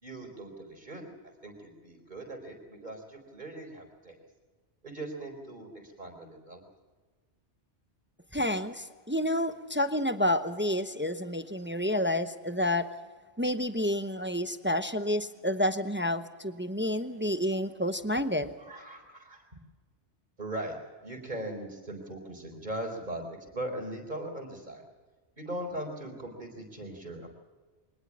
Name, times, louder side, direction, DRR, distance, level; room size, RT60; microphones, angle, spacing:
voice 1, 0.0-4.2 4.8-6.6 18.6-19.5 20.4-24.8 25.4-27.3, right 1 dB, 40° right, 4 dB, 4.3 m, -40 dB
voice 2, 8.3-12.9 13.4-18.5, left 1 dB, 10° right, 10 dB, 0.8 m, -29 dB
23.0 x 19.5 x 7.4 m, 1.4 s
omnidirectional pair, 1.2 m